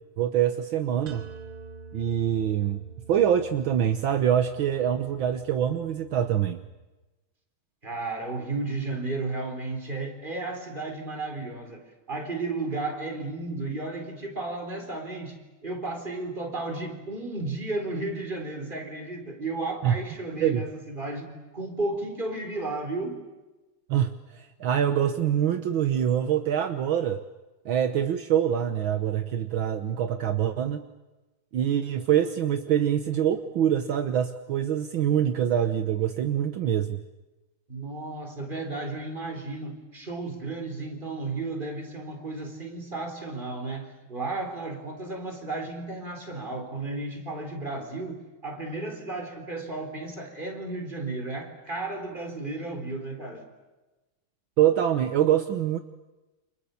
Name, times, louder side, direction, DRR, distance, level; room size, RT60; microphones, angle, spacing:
voice 1, 0.2-1.3 1.9-6.6 19.8-20.0 20.4-20.7 23.9-27.2 27.7-30.8 31.5-37.0 54.6-55.8, right 10 dB, 70° right, 8 dB, 1.8 m, -25 dB
sound 1, 1.1-6.9, right 5 dB, 85° right, 2.6 m, -47 dB
voice 2, 7.8-23.2 37.7-53.5, right 2 dB, 20° right, 5 dB, 4.5 m, -33 dB
30.0 x 27.5 x 7.1 m, 1.1 s
omnidirectional pair, 2.3 m